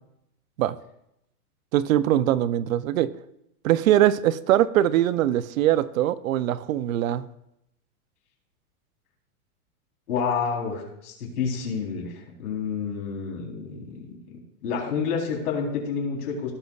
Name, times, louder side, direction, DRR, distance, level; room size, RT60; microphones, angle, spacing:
voice 1, 1.7-3.1 3.6-7.3, right 12 dB, 65° right, 0.6 m, -22 dB
voice 2, 10.1-16.5, left 6 dB, 75° left, 3.9 m, -29 dB
16.5 x 6.5 x 2.4 m
supercardioid pair, 160°, 45 cm